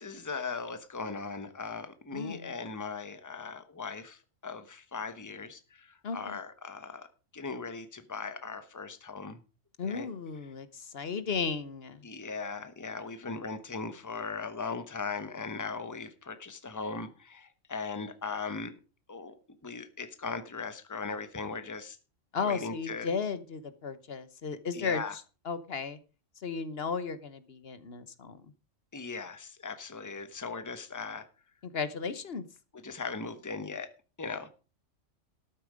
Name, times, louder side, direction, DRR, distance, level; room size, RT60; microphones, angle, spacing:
voice 1, 0.0-7.1 7.3-9.4 9.8-10.1 12.0-18.7 19.1-22.0 22.4-23.1 24.7-25.1 28.9-31.3 32.7-33.9 34.2-34.5, left 4 dB, 15° left, 11 dB, 1.0 m, -38 dB
voice 2, 2.1-2.5 6.0-6.4 9.8-12.0 22.3-26.0 26.4-28.4 31.6-32.4, left 5 dB, 55° left, 13 dB, 1.2 m, -35 dB
13.0 x 8.8 x 5.0 m, 0.34 s
omnidirectional pair, 1.3 m